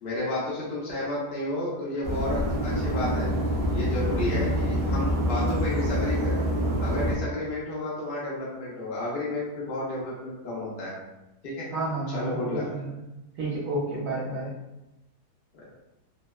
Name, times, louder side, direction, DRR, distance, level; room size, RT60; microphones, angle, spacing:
voice 1, 0.0-3.3 3.7-6.4 6.8-10.9 11.4-11.7 12.1-12.6 15.5-15.6, left 1 dB, 65° left, -6 dB, 0.5 m, -32 dB
sound 1, 2.0-7.1, equal, 55° right, 0.6 m, -26 dB
voice 2, 11.7-12.9 13.4-14.5, right 2 dB, 75° right, -7 dB, 1.1 m, -30 dB
2.8 x 2.1 x 2.2 m, 0.96 s
omnidirectional pair, 1.7 m